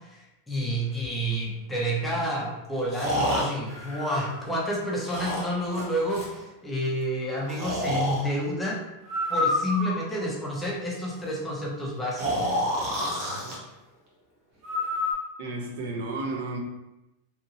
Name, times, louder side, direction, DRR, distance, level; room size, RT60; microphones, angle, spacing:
voice 1, 0.1-8.8 9.3-12.5, equal, 5° left, -4 dB, 0.5 m, -29 dB
Breathing, 1.0-1.1 2.9-4.6 5.0-6.4 7.5-8.2 9.0-10.2 12.2-13.6 14.6-15.1, left 1 dB, 30° right, 0.8 m, -28 dB
voice 2, 15.4-16.6, right 2 dB, 60° right, 1 dB, 0.5 m, -32 dB
2.8 x 2.6 x 2.7 m, 0.96 s
supercardioid pair, 170°, 0 cm